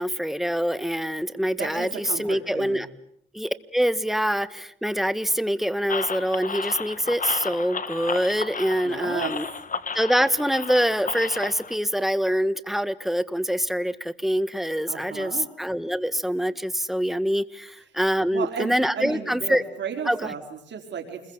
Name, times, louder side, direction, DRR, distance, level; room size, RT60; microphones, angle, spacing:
voice 1, 0.0-2.9 3.3-9.4 9.9-19.6 20.0-20.3, equal, ahead, 13 dB, 1.7 m, -25 dB
voice 2, 1.6-2.8 8.8-9.3 14.9-15.5 18.3-21.3, right 7 dB, 75° right, 3 dB, 4.1 m, -34 dB
sound 1, 5.9-11.8, left 5 dB, 45° left, 1.6 m, -33 dB
29.0 x 22.0 x 8.1 m, 0.70 s
cardioid pair, 65°, 19 cm